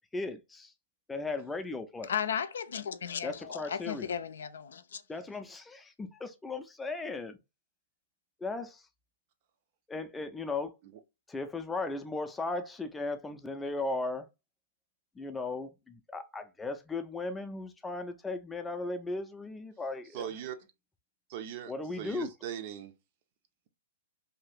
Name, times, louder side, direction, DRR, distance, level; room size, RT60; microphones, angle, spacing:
voice 1, 0.1-0.7 1.1-2.1 3.2-4.1 5.1-7.4 8.4-8.8 9.9-10.8 11.3-14.3 15.2-20.3 21.7-22.3, left 3 dB, 10° left, 0.4 m, -36 dB
voice 2, 2.0-5.0, left 7 dB, 75° left, 0.4 m, -35 dB
voice 3, 20.1-20.6 21.3-21.7 22.0-22.9, right 10 dB, 45° right, 0.5 m, -39 dB
2.7 x 2.4 x 3.4 m
hypercardioid pair, 125°, 0 cm